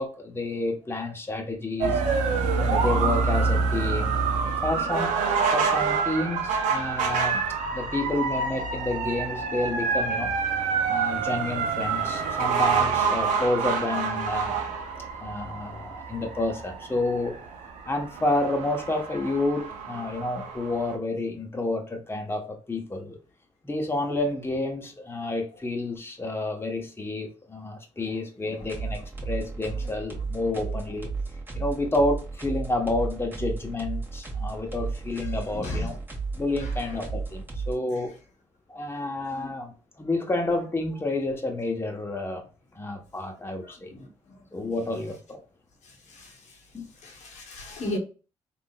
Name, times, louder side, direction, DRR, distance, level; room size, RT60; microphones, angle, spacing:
voice 1, 0.0-2.0 2.5-4.1 4.6-5.2 5.5-10.3 10.9-14.7 15.2-17.3 17.8-23.2 23.6-31.1 31.5-35.9 36.3-38.1 38.7-42.4 42.7-44.0 44.5-45.4 46.7-46.9, left 2 dB, 20° left, 0.9 m, -29 dB
sound 1, 1.8-21.0, right 5 dB, 85° right, 0.6 m, -27 dB
sound 2, 28.6-37.7, right 4 dB, 15° right, 1.5 m, -33 dB
voice 2, 35.5-35.9 39.3-39.5 43.9-44.1 46.1-46.3 47.0-48.0, left 2 dB, 75° left, 1.0 m, -35 dB
3.5 x 2.6 x 2.2 m
supercardioid pair, 50°, 12 cm